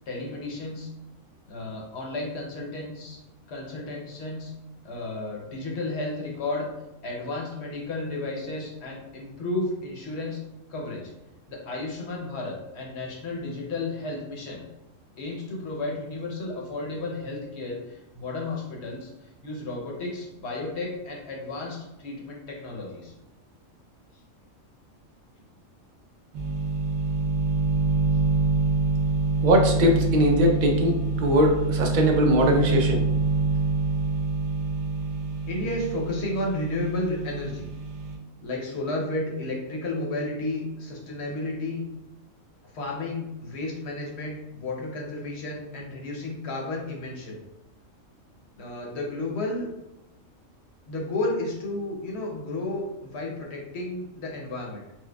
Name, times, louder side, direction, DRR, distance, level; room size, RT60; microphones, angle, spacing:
voice 1, 0.1-0.9 1.5-3.2 3.5-4.5 4.8-6.7 7.0-10.4 10.7-11.1 11.5-14.6 15.2-23.1 35.5-37.7 38.4-41.8 42.6-47.4 48.6-49.7 50.9-54.8, left 2 dB, 60° left, -1 dB, 0.9 m, -32 dB
sound 1, 26.3-38.2, right 3 dB, 85° right, 1.0 m, -26 dB
voice 2, 29.4-33.0, equal, 60° right, 2 dB, 0.5 m, -21 dB
4.4 x 2.1 x 2.2 m, 0.91 s
omnidirectional pair, 1.4 m